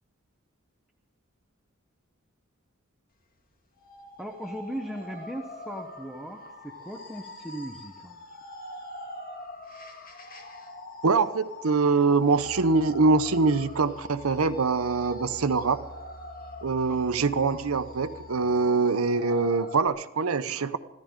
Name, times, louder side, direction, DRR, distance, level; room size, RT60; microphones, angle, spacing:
sound 1, 3.8-19.9, left 2 dB, 40° left, 2.0 m, -44 dB
voice 1, 4.2-8.2 16.9-17.0, equal, ahead, 2 dB, 1.0 m, -38 dB
voice 2, 11.0-15.8 16.6-20.8, right 4 dB, 85° right, 12 dB, 0.8 m, -24 dB
Musical instrument, 12.2-18.6, equal, 15° left, 4.2 m, -48 dB
25.0 x 14.5 x 3.7 m, 1.1 s
head